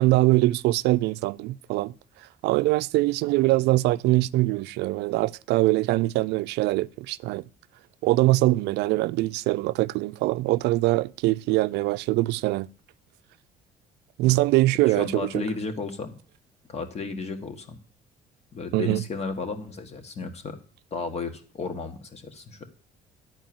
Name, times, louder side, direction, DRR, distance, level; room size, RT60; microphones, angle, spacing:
voice 1, 0.0-1.9 2.4-7.4 8.0-12.7 14.2-15.4 18.7-19.0, right 19 dB, 85° right, 0.4 m, -23 dB
voice 2, 14.9-16.1 16.7-17.8 18.5-20.6 20.9-22.6, left 4 dB, 40° left, 1.7 m, -33 dB
10.5 x 4.5 x 7.7 m
cardioid pair, 110°, 17 cm